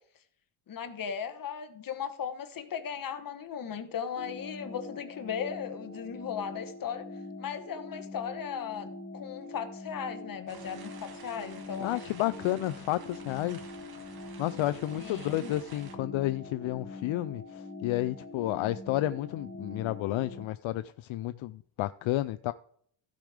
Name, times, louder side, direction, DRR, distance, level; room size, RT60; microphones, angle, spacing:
voice 1, 0.7-7.1 7.4-12.4 14.9-15.5, left 7 dB, 45° left, 1.3 m, -37 dB
sound 1, 4.2-20.5, left 2 dB, 15° left, 1.5 m, -44 dB
sound 2, 10.5-16.0, right 6 dB, 50° right, 1.4 m, -51 dB
voice 2, 11.8-13.7 14.4-22.5, left 15 dB, 70° left, 0.5 m, -31 dB
15.0 x 5.2 x 5.0 m
cardioid pair, 160°, 49 cm